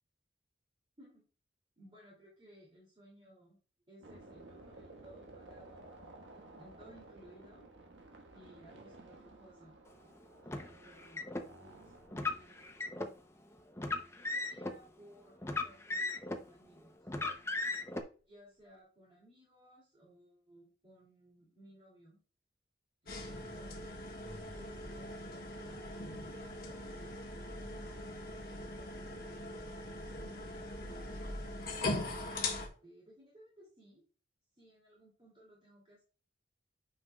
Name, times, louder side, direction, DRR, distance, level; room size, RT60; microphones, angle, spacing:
voice 1, 1.8-3.6 3.9-7.7 8.3-9.8 10.4-11.3 11.6-12.8 14.2-17.1 18.3-22.2 23.0-23.9 24.5-25.9 26.3-27.1 27.6-29.5 30.1-31.2 32.4-34.0 34.5-36.0, equal, 30° right, -4 dB, 2.5 m, -60 dB
sound 1, 4.0-14.0 15.7-15.8 16.0-16.1 17.3-17.9, right 2 dB, 85° right, 1.4 m, -55 dB
Car, 10.5-11.4 12.1-13.1 13.8-14.7 15.4-16.5 17.1-18.0, left 2 dB, 15° left, 0.6 m, -37 dB
sound 2, 23.1-32.7, left 2 dB, 50° left, 1.4 m, -41 dB
9.1 x 5.6 x 2.3 m, 0.38 s
head